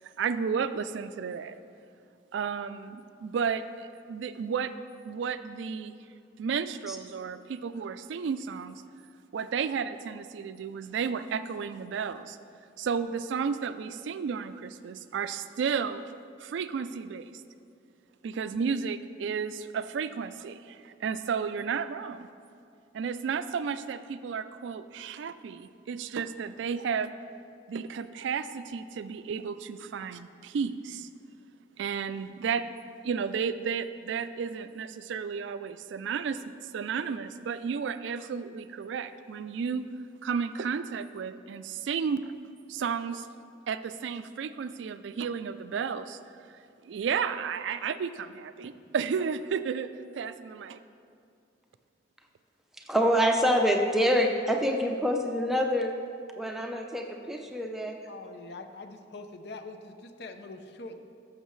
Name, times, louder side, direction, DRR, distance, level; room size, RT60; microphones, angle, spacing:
voice 1, 0.2-1.6 2.3-4.7 5.0-5.9 6.4-8.8 9.3-12.4 12.8-16.1 16.4-17.3 18.2-22.3 22.9-27.1 27.7-31.1 31.8-32.7 33.0-39.9 40.2-42.3 42.7-43.3 43.7-46.2 46.5-46.6 46.8-49.9 50.1-50.8, right 6 dB, 75° right, 12 dB, 0.3 m, -33 dB
voice 2, 52.8-55.9 56.4-58.0, equal, ahead, 2 dB, 0.6 m, -26 dB
voice 3, 58.1-61.0, left 3 dB, 60° left, 7 dB, 0.6 m, -43 dB
13.5 x 6.6 x 3.1 m, 2.3 s
head